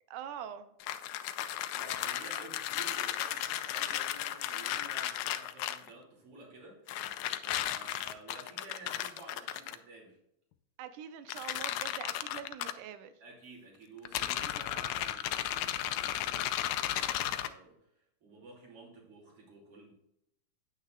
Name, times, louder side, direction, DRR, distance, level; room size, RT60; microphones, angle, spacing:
voice 1, 0.1-0.7 10.8-13.1, right 9 dB, 90° right, 11 dB, 2.3 m, -44 dB
sound 1, 0.8-5.9 6.9-9.8 11.3-12.7 14.1-17.5, left 12 dB, 80° left, 1.9 m, -35 dB
voice 2, 1.4-6.9 7.2-10.2 13.2-19.9, right 2 dB, 50° right, -1 dB, 3.5 m, -52 dB
9.5 x 8.9 x 2.4 m, 0.77 s
omnidirectional pair, 3.6 m